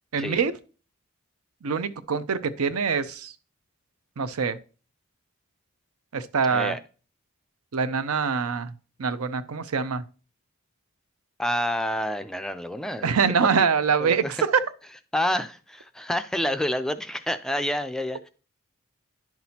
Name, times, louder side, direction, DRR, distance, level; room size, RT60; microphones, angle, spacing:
voice 1, 0.1-0.5 1.6-3.3 4.2-4.6 6.1-6.8 7.7-8.7 9.0-10.0 13.0-14.6, right 6 dB, 85° right, 0.6 m, -24 dB
voice 2, 11.4-13.1 13.6-13.7 14.0-14.4 15.1-18.3, left 1 dB, 5° left, 0.3 m, -28 dB
10.5 x 6.0 x 2.8 m
head